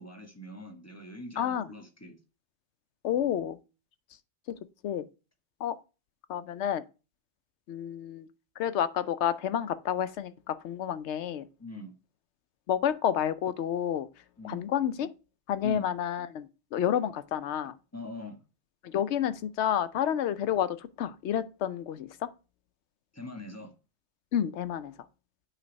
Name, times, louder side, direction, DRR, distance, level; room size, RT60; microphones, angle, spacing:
voice 1, 0.0-2.2 11.6-11.9 14.4-14.6 15.6-15.9 17.9-18.4 23.1-23.7, left 1 dB, 15° left, 1.3 m, -42 dB
voice 2, 1.4-1.7 3.0-3.6 4.5-4.6 4.8-5.1 5.6-5.8 6.3-6.8 7.7-8.3 8.6-11.5 12.7-14.1 14.4-15.1 15.5-17.7 18.8-22.3 24.3-24.9, left 9 dB, 85° left, 0.9 m, -30 dB
9.0 x 3.3 x 5.2 m
omnidirectional pair, 1.1 m